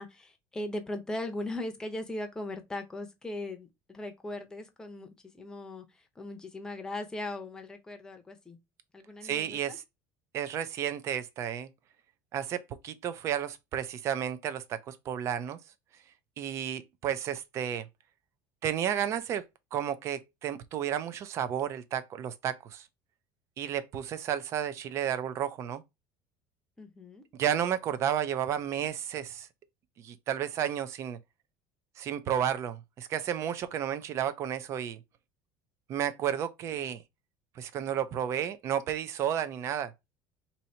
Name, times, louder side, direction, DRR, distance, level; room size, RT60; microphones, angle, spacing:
voice 1, 0.0-5.1 5.4-5.9 6.2-8.6 8.9-9.8 26.8-27.2, left 1 dB, 10° left, 0.7 m, -38 dB
voice 2, 9.2-9.8 10.3-11.7 12.3-15.6 16.4-17.9 18.6-19.4 19.7-22.9 23.6-25.8 27.4-29.5 30.0-31.2 32.0-35.0 35.9-37.0 37.6-39.9, right 9 dB, 40° right, 0.5 m, -32 dB
2.8 x 2.7 x 4.3 m
cardioid pair, 150°, 7 cm